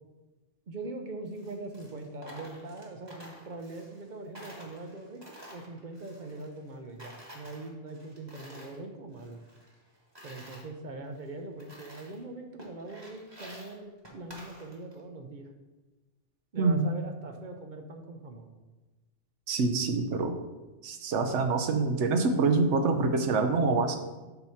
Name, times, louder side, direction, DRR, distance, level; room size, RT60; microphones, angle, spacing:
voice 1, 0.7-9.4 10.2-15.5 16.5-18.5, right 2 dB, 50° right, 4 dB, 0.7 m, -42 dB
Coin (dropping), 1.3-4.1 4.3-6.7 7.0-8.8 9.1-10.6 11.2-11.3 11.6-12.2 12.6-15.0, equal, 20° right, 1.2 m, -50 dB
voice 2, 16.6-16.9 19.5-20.4 20.8-24.0, right 4 dB, 70° right, 7 dB, 0.9 m, -26 dB
7.7 x 2.9 x 5.6 m, 1.2 s
omnidirectional pair, 1.3 m